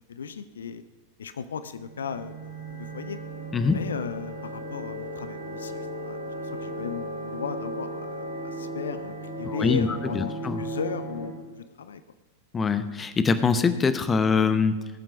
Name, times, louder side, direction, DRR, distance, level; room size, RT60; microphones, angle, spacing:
voice 1, 0.1-0.8 1.2-2.3 2.7-3.2 3.7-6.2 6.6-10.3 10.6-11.4 11.8-12.0, left 7 dB, 65° left, 13 dB, 0.6 m, -35 dB
sound 1, 1.7-11.2, right 1 dB, 85° left, 4.8 m, -36 dB
voice 2, 9.4-10.6 12.5-14.9, left 5 dB, 20° left, 11 dB, 0.9 m, -24 dB
19.0 x 7.4 x 6.0 m, 1.3 s
figure-of-eight pair, 90°, 0 cm